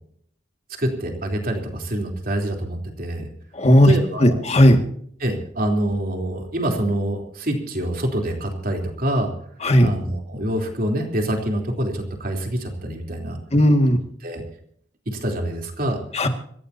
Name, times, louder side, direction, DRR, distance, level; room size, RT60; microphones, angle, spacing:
voice 1, 0.8-3.3 3.8-4.4 5.2-9.3 9.8-13.4 14.2-14.4 15.1-16.0, right 1 dB, 50° right, 3 dB, 3.6 m, -26 dB
voice 2, 3.6-3.9 4.2-4.8 9.6-9.9 13.5-14.0 16.1-16.3, equal, 35° left, 6 dB, 2.0 m, -15 dB
26.0 x 14.5 x 2.8 m, 0.64 s
head